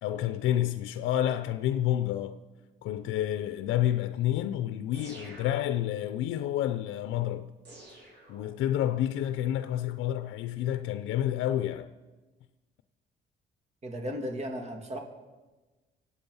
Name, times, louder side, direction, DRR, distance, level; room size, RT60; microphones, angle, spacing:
voice 1, 0.0-2.4 2.8-7.5 8.3-11.9, left 12 dB, 85° left, 0.6 m, -29 dB
sound 1, 4.9-6.2 7.6-8.9, right 1 dB, 60° right, 5.3 m, -49 dB
voice 2, 13.8-15.0, equal, 35° right, 2.7 m, -35 dB
25.0 x 8.6 x 5.5 m
cardioid pair, 90°, 20 cm